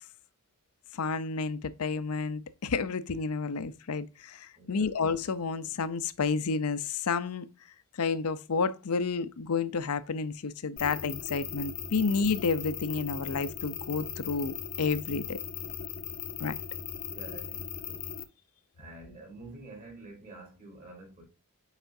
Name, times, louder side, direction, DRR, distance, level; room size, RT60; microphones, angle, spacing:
voice 1, 0.9-7.5 8.0-15.4 16.4-16.6, left 4 dB, 80° left, 0.6 m, -30 dB
voice 2, 4.5-4.9 17.1-18.1 18.8-21.2, right 2 dB, 40° right, 3.5 m, -48 dB
sound 1, 10.8-18.2, left 8 dB, 40° left, 0.7 m, -38 dB
8.1 x 4.9 x 2.6 m
head